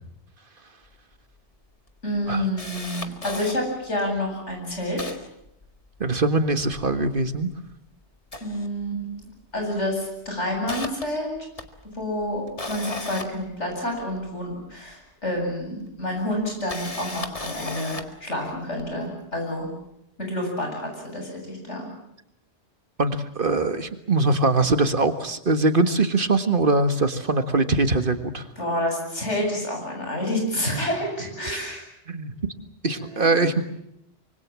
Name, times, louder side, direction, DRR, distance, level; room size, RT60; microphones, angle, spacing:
Camera, 0.9-1.0 1.3-1.4 1.9-3.5 4.2-4.3 4.5-6.2 6.5-7.7 8.1-9.3 9.6-9.8 10.3-14.3 15.4-15.5 16.4-18.2 18.8-18.9, left 2 dB, 30° left, 1.9 m, -36 dB
voice 1, 2.0-5.1 8.4-9.2 9.5-11.3 11.9-12.4 12.7-19.7 20.2-21.9 28.6-31.8 32.9-33.4, left 1 dB, 90° left, 2 dB, 8.4 m, -28 dB
voice 2, 6.0-7.5 23.0-28.5 31.5-31.6 32.1-32.3 32.8-33.6, right 3 dB, 50° right, 10 dB, 1.8 m, -22 dB
25.5 x 24.5 x 7.5 m, 0.78 s
omnidirectional pair, 1.2 m